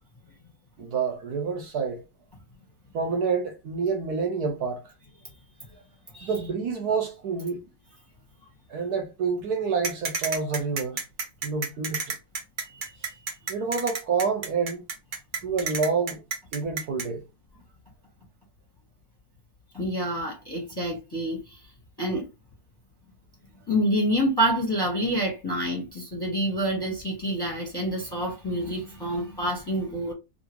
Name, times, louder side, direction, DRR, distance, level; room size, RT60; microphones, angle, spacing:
voice 1, 0.8-2.0 2.9-4.9 6.2-7.6 8.7-11.0 11.4-12.2 13.5-14.8 15.4-16.2 16.5-17.2, right 5 dB, 70° right, 1.1 m, -28 dB
sound 1, 9.8-17.1, right 4 dB, 85° right, 0.4 m, -31 dB
voice 2, 12.7-13.2 19.7-21.6 22.0-22.3 23.7-30.1, equal, 20° left, 0.8 m, -28 dB
2.9 x 2.6 x 2.9 m
omnidirectional pair, 1.9 m